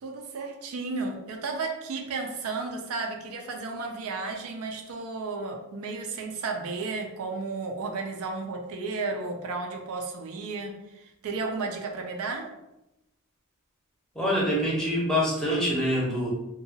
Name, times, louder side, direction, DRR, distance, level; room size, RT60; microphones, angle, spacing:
voice 1, 0.0-12.5, right 3 dB, 75° right, 3 dB, 0.4 m, -33 dB
voice 2, 14.1-16.3, equal, 5° left, -5 dB, 0.7 m, -25 dB
2.7 x 2.2 x 2.7 m, 0.93 s
head